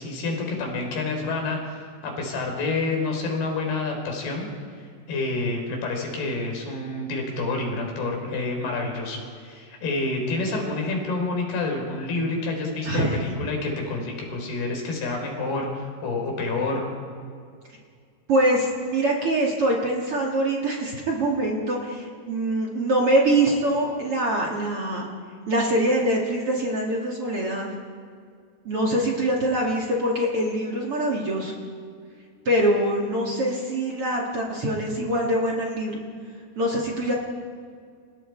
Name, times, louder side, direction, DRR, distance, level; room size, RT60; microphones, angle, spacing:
voice 1, 0.0-4.5 5.1-16.9, left 3 dB, 70° left, 1 dB, 6.2 m, -28 dB
voice 2, 18.3-25.1 25.5-27.7 28.6-31.5 32.5-36.0 36.6-37.1, right 1 dB, 40° right, -1 dB, 2.7 m, -24 dB
29.5 x 27.5 x 4.7 m, 2.1 s
omnidirectional pair, 4.7 m